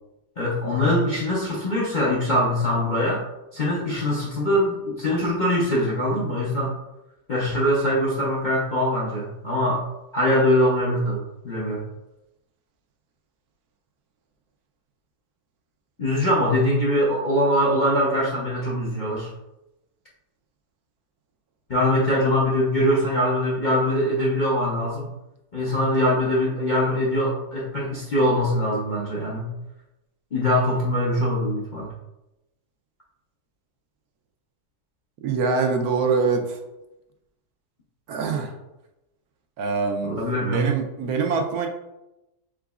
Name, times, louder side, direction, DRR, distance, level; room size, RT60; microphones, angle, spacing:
voice 1, 0.4-3.2 3.5-6.7 7.3-9.8 10.1-11.8 16.0-19.3 21.7-25.1 25.5-29.5 30.3-31.9 40.0-40.7, left 1 dB, 45° left, -5 dB, 0.6 m, -22 dB
voice 2, 35.2-36.6 38.1-38.5 39.6-41.7, right 4 dB, 75° right, 4 dB, 1.1 m, -24 dB
4.8 x 3.9 x 2.3 m, 0.93 s
omnidirectional pair, 1.7 m